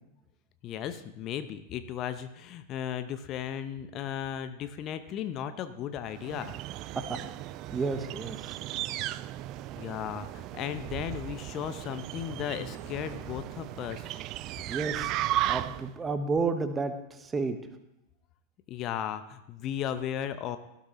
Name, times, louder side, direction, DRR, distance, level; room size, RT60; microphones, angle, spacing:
voice 1, 0.6-6.6 9.8-14.2 18.7-20.6, left 9 dB, 35° left, 11 dB, 0.8 m, -35 dB
sound 1, 6.1-16.0, right 14 dB, 40° right, 0.4 m, -36 dB
voice 2, 7.7-8.5 14.7-15.1 15.5-16.9 17.2-17.6, right 4 dB, 15° right, 9 dB, 1.2 m, -31 dB
18.0 x 12.0 x 3.1 m, 0.87 s
figure-of-eight pair, 90°, 0 cm